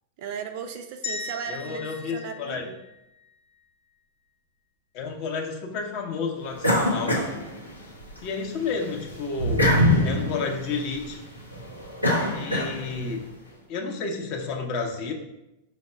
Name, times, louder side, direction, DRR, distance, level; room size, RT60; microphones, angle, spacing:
voice 1, 0.2-2.8, right 7 dB, 45° right, 6 dB, 0.4 m, -36 dB
sound 1, 1.0-3.3, left 4 dB, 60° left, 1.0 m, -37 dB
voice 2, 1.5-2.6 4.9-7.2 8.2-9.7 10.0-11.2 12.3-13.3 13.7-15.1, left 4 dB, 45° left, 2 dB, 0.6 m, -31 dB
sound 2, 6.6-8.2 8.6-13.1, left 1 dB, 90° left, 0.7 m, -24 dB
4.3 x 2.0 x 4.4 m, 0.90 s
figure-of-eight pair, 90°, 0 cm